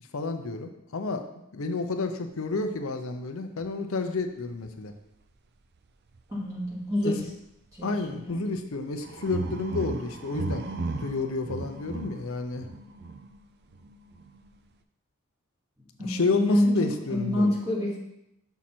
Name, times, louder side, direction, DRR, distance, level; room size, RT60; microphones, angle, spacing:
voice 1, 0.1-1.2 1.5-4.9 7.0-7.1 7.8-10.7 11.0-12.7 16.0-17.5, left 3 dB, 70° left, 6 dB, 0.6 m, -30 dB
sound 1, 3.6-3.7 4.7-4.8 6.1-6.2 7.1-7.3 8.1-8.3 9.0-13.4 13.7-14.5, right 2 dB, 50° right, 0.5 m, -36 dB
voice 2, 6.3-7.2 7.7-8.5 16.0-18.0, left 1 dB, 15° right, -5 dB, 2.1 m, -27 dB
6.2 x 5.7 x 4.3 m, 0.82 s
head